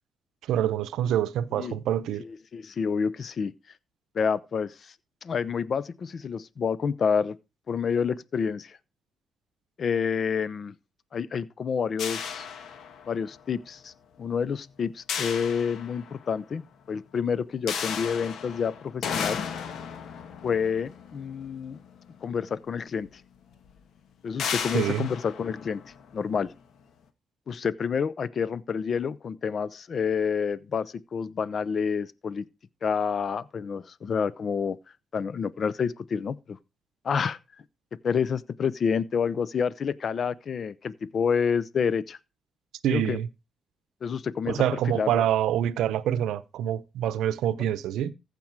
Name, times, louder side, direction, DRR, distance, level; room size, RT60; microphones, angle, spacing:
voice 1, 0.4-2.2 24.7-25.1 42.8-43.3 44.5-48.1, right 10 dB, 85° right, 0.7 m, -26 dB
voice 2, 2.2-3.5 4.1-4.9 5.2-7.4 7.7-8.8 9.8-10.7 11.1-12.5 13.1-13.9 14.2-19.5 20.4-21.8 22.2-23.1 24.2-25.8 26.1-26.5 27.5-32.5 32.8-34.8 35.1-36.6 37.0-37.4 38.0-42.2 42.9-43.2 44.0-44.6 44.9-45.2, left 6 dB, 50° left, 0.7 m, -28 dB
sound 1, 12.0-13.4 15.1-16.4 17.7-22.1 23.1-23.2 23.5-23.7 24.4-26.4, left 7 dB, 70° left, 1.5 m, -35 dB
15.0 x 5.4 x 4.7 m
cardioid pair, 90°, 0 cm